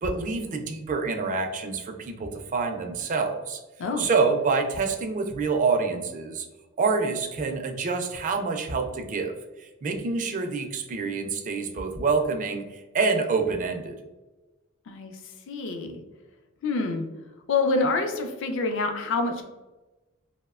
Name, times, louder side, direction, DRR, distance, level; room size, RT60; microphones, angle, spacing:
voice 1, 0.0-3.6 4.0-6.5 6.8-13.9, right 4 dB, 40° right, 4 dB, 0.3 m, -27 dB
voice 2, 15.5-16.0 16.6-17.0 17.5-19.4, left 3 dB, 65° left, 5 dB, 0.4 m, -26 dB
2.7 x 2.1 x 2.3 m, 1.1 s
head